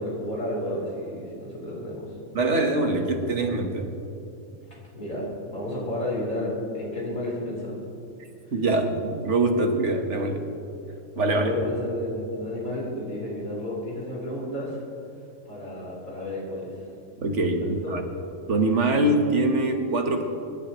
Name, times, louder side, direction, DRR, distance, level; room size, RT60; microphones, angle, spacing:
voice 1, 0.0-2.1 4.9-7.8 11.2-14.8 15.5-16.8 17.8-17.9, left 1 dB, 80° left, -5 dB, 4.4 m, -31 dB
voice 2, 2.3-3.9 8.5-10.4 11.2-11.5 17.2-18.0 18.5-20.2, right 2 dB, 60° right, 4 dB, 1.5 m, -23 dB
25.0 x 12.0 x 3.0 m, 2.6 s
omnidirectional pair, 1.4 m